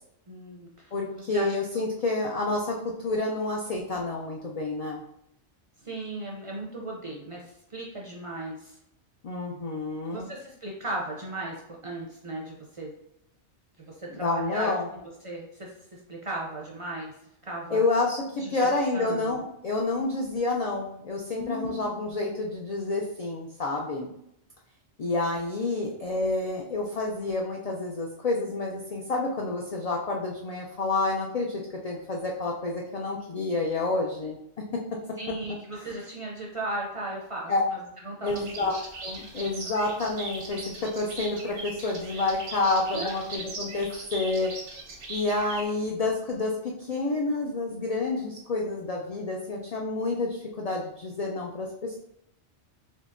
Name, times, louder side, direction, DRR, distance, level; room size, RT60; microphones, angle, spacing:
voice 1, 0.3-1.6 5.8-8.8 10.1-12.9 13.9-14.7 15.0-17.1 17.4-17.8 18.4-18.6 18.9-19.3 21.3-22.2 25.1-25.4 35.2-38.7 39.4-39.5 42.9-43.1, right 1 dB, 40° right, -2 dB, 0.5 m, -37 dB
voice 2, 0.9-5.0 9.2-10.3 14.1-14.9 17.7-24.1 25.0-34.4 37.5-37.6 38.2-44.5 45.1-52.0, left 2 dB, 70° left, -1 dB, 0.3 m, -29 dB
sound 1, 38.3-45.6, right 2 dB, 80° right, 1.1 m, -40 dB
3.7 x 2.8 x 2.5 m, 0.77 s
omnidirectional pair, 1.2 m